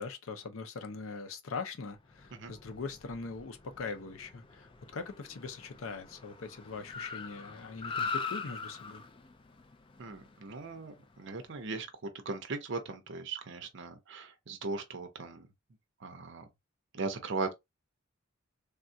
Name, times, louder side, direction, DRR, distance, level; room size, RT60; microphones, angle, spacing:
voice 1, 0.0-9.0, left 4 dB, 80° left, 0.6 m, -41 dB
Car, 2.0-11.6, left 5 dB, 25° left, 0.3 m, -43 dB
voice 2, 10.0-15.5 16.0-16.5 16.9-17.5, right 3 dB, 60° right, 0.6 m, -38 dB
3.5 x 2.3 x 2.6 m
head